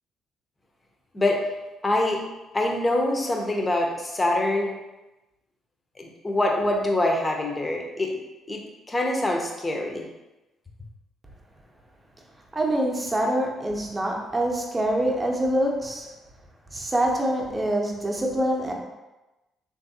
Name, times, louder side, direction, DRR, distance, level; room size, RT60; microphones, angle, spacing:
voice 1, 1.8-2.2 2.5-4.7 6.0-8.2 8.5-8.6 8.9-10.1, left 1 dB, 25° left, 2 dB, 0.6 m, -24 dB
voice 2, 12.5-16.1 16.7-18.7, right 1 dB, 20° right, 0 dB, 0.7 m, -25 dB
3.3 x 2.6 x 2.7 m, 1.0 s
hypercardioid pair, 45°, 0 cm